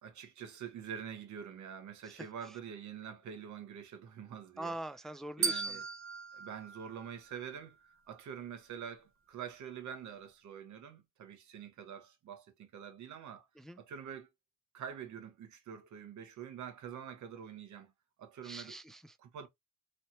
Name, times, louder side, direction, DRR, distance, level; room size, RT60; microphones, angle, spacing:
voice 1, 0.0-4.8 5.4-5.9 6.3-13.5 13.8-14.3 14.7-17.9 18.2-18.8 19.2-19.5, right 8 dB, 70° right, 1.1 m, -46 dB
voice 2, 4.6-5.8 13.6-13.8 18.4-19.2, right 1 dB, ahead, 0.3 m, -43 dB
sound 1, 5.4-7.7, right 5 dB, 45° right, 0.7 m, -38 dB
3.2 x 2.8 x 2.6 m
cardioid pair, 90°, 30 cm